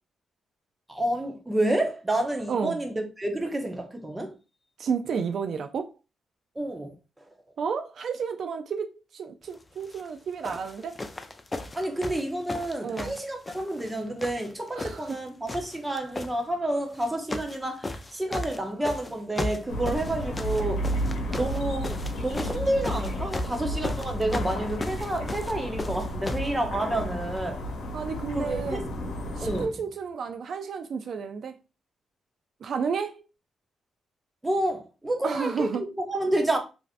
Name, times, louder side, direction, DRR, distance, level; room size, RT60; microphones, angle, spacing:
voice 1, 0.9-4.3 6.6-6.9 11.8-20.9 21.3-27.6 28.3-29.0 29.4-29.7 34.4-36.6, right 1 dB, 15° right, 0.8 m, -29 dB
voice 2, 2.5-2.8 4.8-5.9 7.6-11.0 12.8-13.2 14.8-15.0 21.3-21.5 27.9-28.9 29.4-31.5 32.6-33.2 35.2-35.8, right 6 dB, 65° right, 0.3 m, -31 dB
sound 1, 9.8-10.1 10.4-13.9 14.2-15.2 15.5-16.3 16.9-17.6 17.8-26.5 27.4-27.5, left 2 dB, 20° left, 0.3 m, -35 dB
sound 2, 19.7-29.7, equal, 85° left, 0.9 m, -32 dB
3.1 x 2.6 x 2.4 m
cardioid pair, 95°, 0 cm